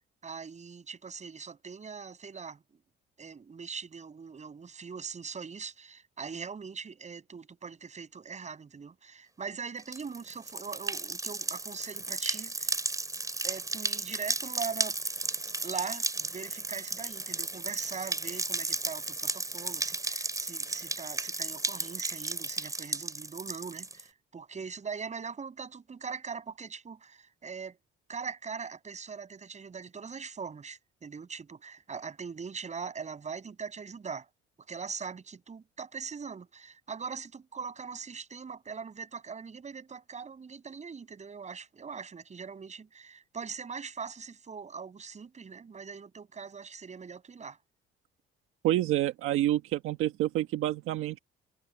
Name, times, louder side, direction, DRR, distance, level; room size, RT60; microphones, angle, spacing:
voice 1, 0.2-2.6 3.2-12.8 13.4-15.0 15.6-27.8 28.1-34.3 34.7-47.6, right 5 dB, 35° right, 6.9 m, -41 dB
sound 1, 9.8-24.0, right 2 dB, 15° right, 4.6 m, -34 dB
voice 2, 48.6-51.2, right 14 dB, 90° right, 1.4 m, -28 dB
cardioid pair, 105°, 21 cm